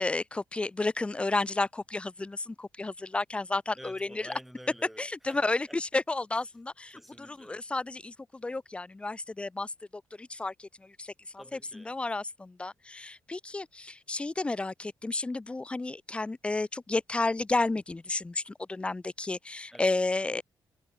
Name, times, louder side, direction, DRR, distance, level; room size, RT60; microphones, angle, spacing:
voice 1, 0.0-4.0 5.0-11.4 11.7-20.4, left 2 dB, 15° left, 1.0 m, -32 dB
voice 2, 3.8-5.8 6.4-6.6 6.9-7.6 11.4-12.0 19.7-19.9, equal, ahead, 1.9 m, -49 dB
cardioid pair, 160°, 8 cm